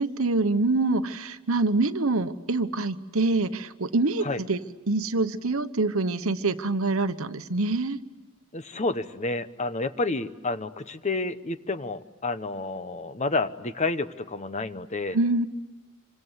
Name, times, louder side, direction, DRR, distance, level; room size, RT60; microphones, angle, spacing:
voice 1, 0.0-4.6 4.9-8.0 15.1-15.5, right 3 dB, 65° right, 11 dB, 1.1 m, -25 dB
voice 2, 8.5-15.2, left 3 dB, 35° left, 12 dB, 1.0 m, -30 dB
27.5 x 25.0 x 8.1 m, 1.2 s
head